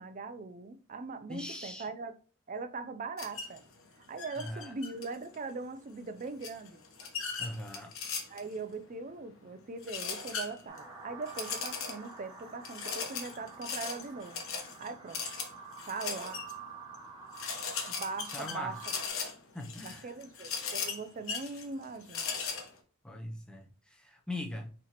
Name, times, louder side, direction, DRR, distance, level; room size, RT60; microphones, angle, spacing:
voice 1, 0.0-2.1 2.5-3.6 4.1-6.8 8.3-14.5 14.8-15.2 15.9-16.4 17.9-18.8 19.8-22.4, right 4 dB, 35° right, 0.4 m, -41 dB
voice 2, 1.3-1.9 4.4-4.7 7.4-7.9 18.3-18.8 19.5-20.1 23.0-24.7, left 1 dB, 5° left, 0.6 m, -41 dB
sound 1, 3.2-3.6 4.2-5.4 6.4-8.6 9.8-10.8 11.3-12.1 12.6-16.5 16.9-17.0 17.3-22.7, left 5 dB, 75° left, 1.0 m, -38 dB
sound 2, 10.7-19.1, right 5 dB, 20° right, 1.1 m, -48 dB
4.3 x 4.0 x 2.9 m
head